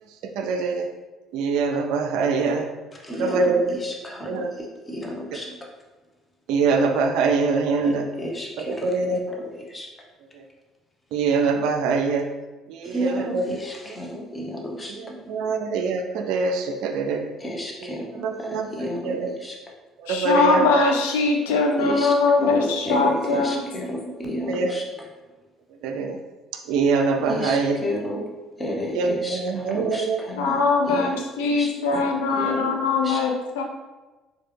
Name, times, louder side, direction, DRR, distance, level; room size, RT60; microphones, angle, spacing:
voice 1, 0.4-0.9 1.3-2.7 3.2-3.8 4.3-4.5 6.5-8.0 8.8-9.2 11.1-12.3 12.7-13.4 15.3-17.3 18.2-18.7 19.0-19.3 20.1-20.7 24.5-24.7 25.8-26.2 26.7-27.8 28.9-30.2, right 4 dB, 60° right, 4 dB, 0.4 m, -23 dB
voice 2, 3.0-5.7 7.8-8.9 9.3-9.9 12.8-15.6 17.4-19.6 21.5-25.1 27.3-28.2 28.6-31.1 31.4-33.2, equal, 20° left, -1 dB, 0.9 m, -32 dB
voice 3, 20.1-23.6 30.4-33.6, left 3 dB, 70° left, 2 dB, 0.4 m, -21 dB
4.5 x 2.3 x 3.3 m, 1.2 s
figure-of-eight pair, 50°, 0 cm